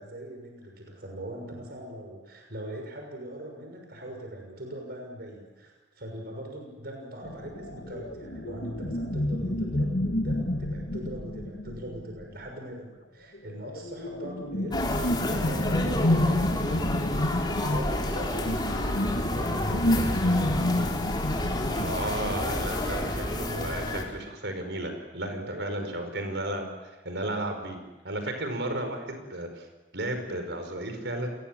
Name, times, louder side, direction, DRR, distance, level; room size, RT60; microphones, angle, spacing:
voice 1, 0.0-14.8 15.1-16.5 17.5-18.8 19.3-20.7 25.4-26.0, right 1 dB, 60° right, 2 dB, 6.3 m, -41 dB
sound 1, 7.2-12.5 13.3-22.7, left 1 dB, 80° left, 3.0 m, -29 dB
sound 2, 14.7-24.0, left 1 dB, 25° left, 3.7 m, -30 dB
voice 2, 21.7-26.7 27.0-29.6 29.9-31.3, right 1 dB, 80° right, 6 dB, 5.0 m, -33 dB
29.5 x 22.5 x 7.5 m, 1.1 s
head